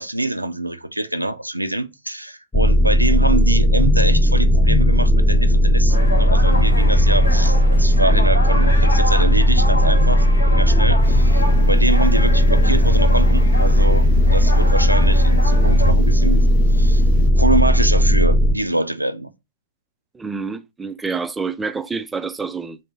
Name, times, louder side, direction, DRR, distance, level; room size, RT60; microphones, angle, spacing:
voice 1, 0.0-16.5 16.7-17.0 17.4-19.3, right 1 dB, 85° right, 0.4 m, -25 dB
sound 1, 2.5-18.5, equal, 15° left, 0.7 m, -15 dB
sound 2, 5.9-15.9, left 1 dB, 80° left, 0.9 m, -29 dB
sound 3, 11.0-17.3, left 11 dB, 50° left, 0.7 m, -35 dB
voice 2, 20.1-22.8, right 5 dB, 10° right, 0.3 m, -27 dB
3.5 x 2.6 x 3.9 m
figure-of-eight pair, 105°, 0 cm